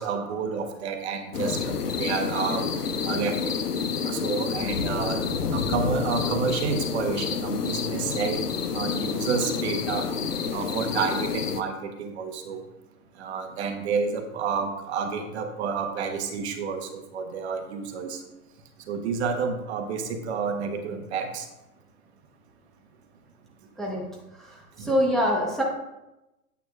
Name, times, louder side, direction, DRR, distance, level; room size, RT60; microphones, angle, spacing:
voice 1, 0.0-3.6 4.0-5.2 5.5-8.4 8.7-10.1 10.5-12.6 13.2-18.3 18.9-21.5 24.8-25.0, right 5 dB, 45° right, 5 dB, 1.1 m, -30 dB
sound 1, 1.3-11.6, left 5 dB, 80° left, 0.9 m, -29 dB
voice 2, 24.4-25.6, equal, ahead, -3 dB, 0.9 m, -25 dB
8.9 x 8.1 x 2.4 m, 0.94 s
figure-of-eight pair, 120°, 46 cm